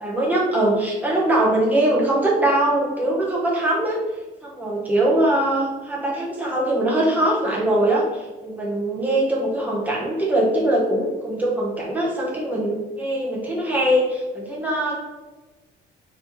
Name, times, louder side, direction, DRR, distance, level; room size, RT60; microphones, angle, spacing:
voice 1, 0.0-4.0 4.4-15.0, right 1 dB, 10° right, -4 dB, 0.9 m, -22 dB
3.9 x 2.9 x 3.2 m, 1.2 s
cardioid pair, 150°, 20 cm